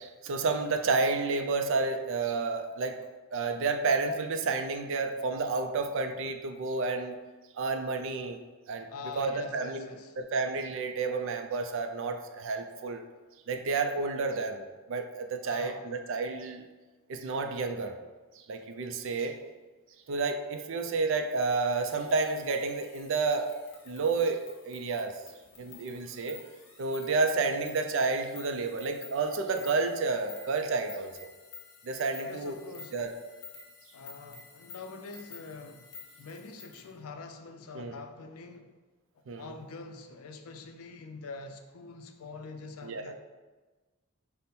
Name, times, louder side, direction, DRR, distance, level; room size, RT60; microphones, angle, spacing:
voice 1, 0.0-3.0 3.3-7.2 7.5-8.4 8.7-8.9 9.2-9.9 10.2-13.1 13.5-16.7 17.1-18.0 18.4-19.4 20.1-23.5 23.9-25.2 25.6-26.4 26.8-31.3 31.8-32.6 32.9-33.1 37.7-38.0 39.3-39.5 42.8-43.1, right 4 dB, 60° right, 6 dB, 0.4 m, -30 dB
voice 2, 8.9-10.2 15.4-15.9 18.5-18.6 32.2-33.0 33.9-38.7 39.4-43.2, left 4 dB, 80° left, 6 dB, 0.5 m, -45 dB
sound 1, 21.2-36.9, left 5 dB, 55° left, 0.9 m, -51 dB
5.3 x 2.1 x 4.2 m, 1.3 s
head